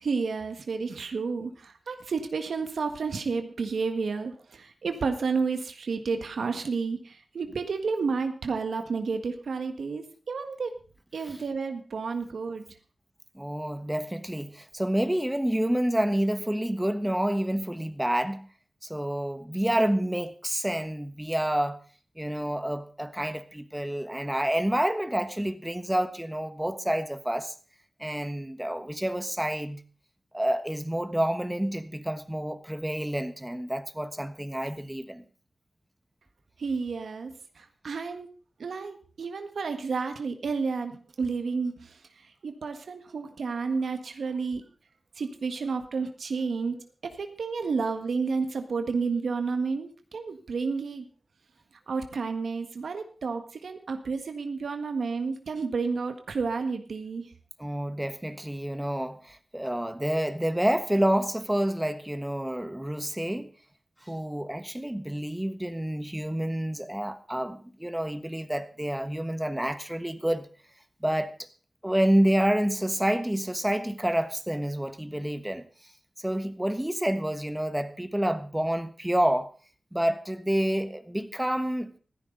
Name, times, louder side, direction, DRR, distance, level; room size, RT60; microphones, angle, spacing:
voice 1, 0.0-10.7 11.1-12.6 36.6-37.3 37.6-38.3 38.6-41.7 42.4-44.6 45.2-51.0 51.9-57.2, right 4 dB, 85° right, 1.6 m, -31 dB
voice 2, 13.3-18.5 18.8-21.8 22.2-27.5 28.0-29.8 30.3-35.2 57.6-63.5 64.0-70.5 71.0-71.5 71.8-75.7 76.2-79.5 79.9-82.0, right 1 dB, 10° right, 1.3 m, -28 dB
16.0 x 14.0 x 3.9 m
wide cardioid pair, 75°, 0 cm